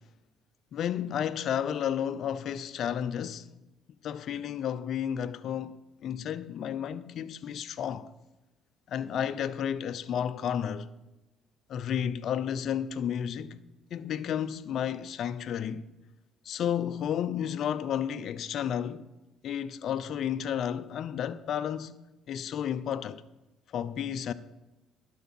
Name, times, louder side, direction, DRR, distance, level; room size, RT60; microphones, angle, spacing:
voice 1, 0.7-3.5 4.0-8.1 8.9-10.9 11.7-13.6 13.9-15.9 16.4-19.1 19.4-21.9 22.3-23.2 23.7-24.3, left 9 dB, 60° left, 0.5 m, -32 dB
11.5 x 4.6 x 7.3 m
supercardioid pair, 70°, 0 cm